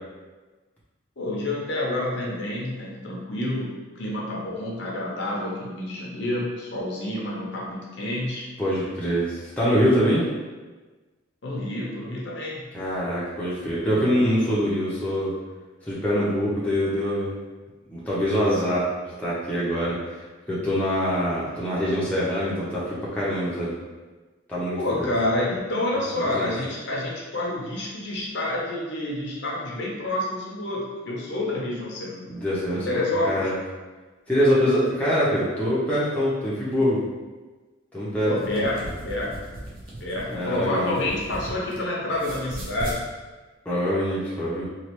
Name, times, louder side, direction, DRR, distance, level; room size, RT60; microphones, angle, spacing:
voice 1, 1.2-8.5 11.4-12.6 24.7-32.3 32.7-33.3 38.2-39.3 40.0-43.1, left 1 dB, 60° left, -4 dB, 0.6 m, -28 dB
voice 2, 8.6-10.2 12.7-15.3 15.9-17.3 17.9-18.9 19.2-20.0 20.5-23.8 24.5-25.1 26.2-26.5 32.3-33.6 34.3-37.0 37.9-38.6 40.3-41.0 43.7-44.6, equal, 5° left, -9 dB, 0.6 m, -24 dB
sound 1, 38.4-41.8 42.1-43.0, right 1 dB, 45° right, 0.6 m, -37 dB
3.1 x 2.3 x 2.9 m, 1.3 s
head